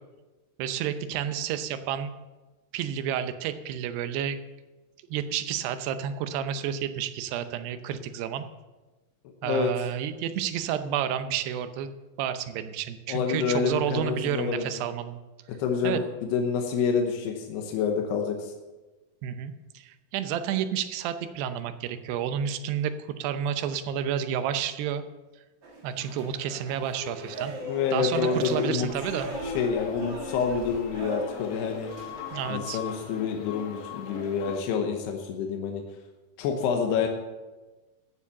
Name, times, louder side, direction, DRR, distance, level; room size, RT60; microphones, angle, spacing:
voice 1, 0.6-2.1 2.7-4.4 5.1-8.5 9.4-11.9 12.2-15.2 15.8-16.0 19.2-22.9 23.2-25.0 25.8-27.5 27.9-29.3 32.3-32.8, right 9 dB, 85° right, 10 dB, 2.9 m, -30 dB
voice 2, 13.1-14.7 15.5-18.5 27.7-28.9 29.4-31.9 32.5-35.8 36.4-37.1, left 6 dB, 85° left, 3 dB, 3.1 m, -28 dB
sound 1, 25.6-32.5, equal, 50° right, 1.4 m, -38 dB
sound 2, 28.9-34.6, left 7 dB, 65° left, 1.7 m, -40 dB
14.5 x 7.3 x 7.0 m, 1.2 s
omnidirectional pair, 4.7 m